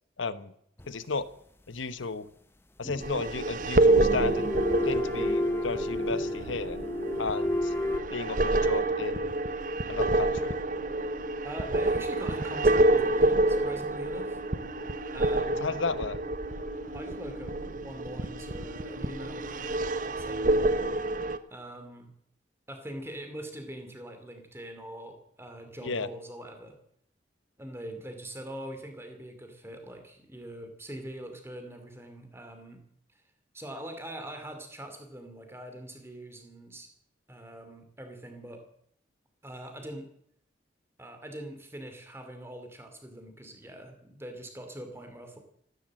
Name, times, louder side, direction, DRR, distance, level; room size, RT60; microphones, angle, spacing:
voice 1, 0.2-0.5 0.9-1.3 1.7-2.3 2.8-4.4 4.8-6.8 7.2-7.7 8.1-9.4 9.9-10.6 15.6-16.2 25.8-26.1, left 4 dB, 85° left, 14 dB, 1.0 m, -33 dB
sound 1, 0.8-0.9 2.8-3.4 4.0-8.0, left 1 dB, 10° left, 0.8 m, -31 dB
sound 2, 3.0-21.4, right 2 dB, 45° right, 0.8 m, -28 dB
sound 3, 3.3-20.1, equal, 75° right, 2.1 m, -45 dB
voice 2, 11.4-14.4 15.1-15.8 16.9-19.8 20.2-20.7 21.5-22.1 22.7-26.8 27.6-32.8 33.5-36.9 37.3-38.6 39.4-40.1 41.0-45.4, right 1 dB, 15° right, 6 dB, 2.7 m, -43 dB
14.5 x 12.5 x 7.7 m, 0.71 s
head